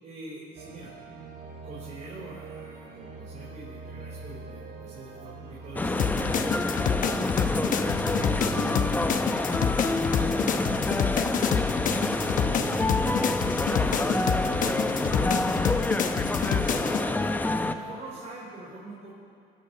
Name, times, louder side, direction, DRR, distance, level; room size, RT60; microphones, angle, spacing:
voice 1, 0.0-0.9 1.4-6.6 6.9-10.3 10.9-11.3 11.7-14.4 14.8-15.6 16.1-19.1, right 2 dB, 45° right, -7 dB, 4.8 m, -45 dB
sound 1, 0.6-18.0, right 4 dB, 75° right, 2.3 m, -42 dB
sound 2, 5.8-17.7, left 2 dB, 10° left, 0.7 m, -27 dB
sound 3, 6.0-17.0, left 8 dB, 50° left, 1.0 m, -28 dB
22.0 x 8.9 x 7.0 m, 2.4 s
cardioid pair, 110°, 17 cm